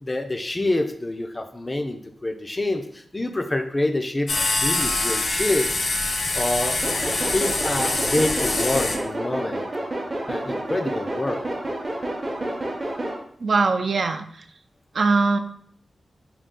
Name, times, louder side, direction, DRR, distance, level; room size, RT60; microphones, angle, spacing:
voice 1, 0.0-5.7 6.3-6.8 7.3-9.7 10.3-11.4, left 2 dB, 20° left, 6 dB, 0.3 m, -26 dB
sound 1, 4.3-9.0, left 2 dB, 65° left, 0.6 m, -24 dB
sound 2, 6.8-13.2, right 1 dB, 30° right, 0.6 m, -29 dB
voice 2, 13.4-14.4 14.9-15.4, right 3 dB, 60° right, 7 dB, 0.3 m, -21 dB
3.7 x 2.3 x 3.6 m, 0.64 s
wide cardioid pair, 110°, 0 cm